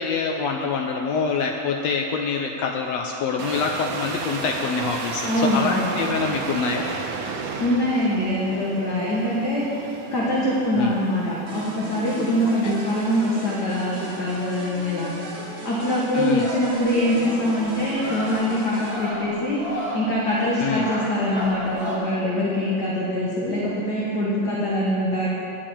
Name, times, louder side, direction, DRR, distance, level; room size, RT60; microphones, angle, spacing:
voice 1, 0.0-6.9 10.7-10.9 12.6-12.7 16.1-16.5 20.6-20.9, left 5 dB, 80° left, 2 dB, 1.5 m, -25 dB
sound 1, 3.4-19.6 19.9-20.2 20.8-20.9, right 4 dB, 80° right, 2.5 m, -36 dB
voice 2, 5.2-5.9 7.6-9.7 10.1-15.1 15.6-25.3, left 1 dB, 45° left, -6 dB, 1.4 m, -24 dB
sound 2, 11.5-19.0, right 2 dB, 45° right, 2.4 m, -36 dB
sound 3, 16.4-22.0, equal, 10° right, 2.1 m, -34 dB
10.5 x 7.5 x 8.6 m, 3.0 s
omnidirectional pair, 3.6 m